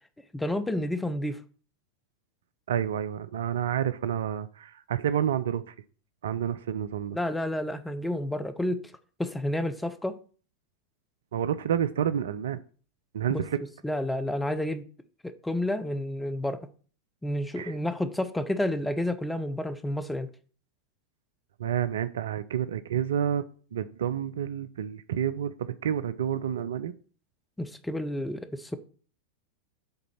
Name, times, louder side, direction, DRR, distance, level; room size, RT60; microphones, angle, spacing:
voice 1, 0.3-1.4 7.1-8.8 9.2-10.2 13.3-13.4 13.8-14.8 15.2-16.7 17.2-20.3 27.6-28.8, left 1 dB, 5° left, 0.8 m, -30 dB
voice 2, 2.7-5.7 6.2-7.2 11.3-12.6 13.1-13.6 17.6-17.7 21.6-23.5 23.7-26.9, right 9 dB, 60° right, 0.4 m, -29 dB
7.8 x 3.9 x 5.7 m
figure-of-eight pair, 90°, 0 cm